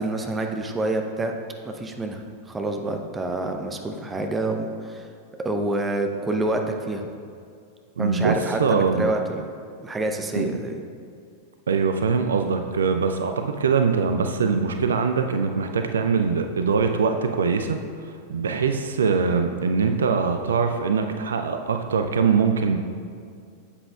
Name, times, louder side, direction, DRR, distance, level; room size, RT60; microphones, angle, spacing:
voice 1, 0.0-1.3 1.6-5.1 5.4-7.1 8.0-9.5 9.8-10.8, right 2 dB, 15° right, 4 dB, 0.7 m, -27 dB
voice 2, 8.0-9.1 10.3-10.6 11.7-22.8, right 5 dB, 65° right, 6 dB, 0.4 m, -23 dB
9.7 x 7.8 x 2.3 m, 2.3 s
figure-of-eight pair, 90°, 0 cm